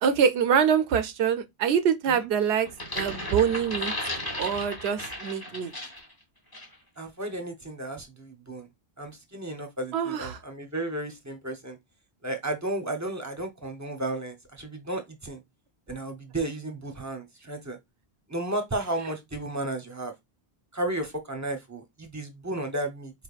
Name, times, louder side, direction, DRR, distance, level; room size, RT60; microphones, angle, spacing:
voice 1, 0.0-2.7 2.9-3.9 4.4-5.7 9.9-10.4, right 7 dB, 85° right, 0.9 m, -24 dB
sound 1, 2.7-6.1 6.5-6.7, left 1 dB, 20° left, 1.0 m, -35 dB
voice 2, 7.0-8.7 9.0-11.8 12.2-15.4 15.9-17.8 18.3-20.1 20.7-23.1, right 1 dB, 20° right, 0.7 m, -33 dB
4.4 x 3.4 x 2.4 m
omnidirectional pair, 1.1 m